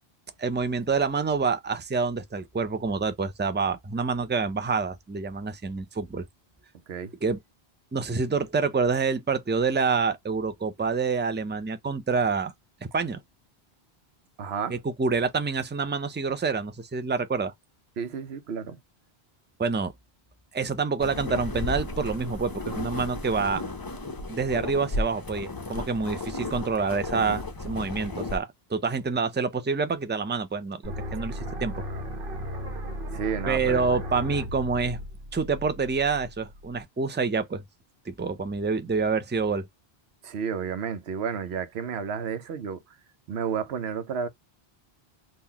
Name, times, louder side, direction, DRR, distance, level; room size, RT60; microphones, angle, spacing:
voice 1, 0.4-6.3 7.2-7.4 7.9-12.5 12.8-13.2 14.7-17.5 19.6-19.9 20.5-23.6 24.3-31.7 33.5-35.0 35.3-37.6 38.1-39.7, right 4 dB, 15° right, 0.4 m, -27 dB
voice 2, 14.4-14.8 18.0-18.8 33.1-34.0 40.2-42.8 43.3-44.3, right 6 dB, 80° right, 1.0 m, -31 dB
sound 1, 21.0-28.4, left 2 dB, 25° left, 0.6 m, -34 dB
sound 2, 30.8-36.8, left 1 dB, 60° right, 1.2 m, -35 dB
3.8 x 2.6 x 2.8 m
omnidirectional pair, 1.1 m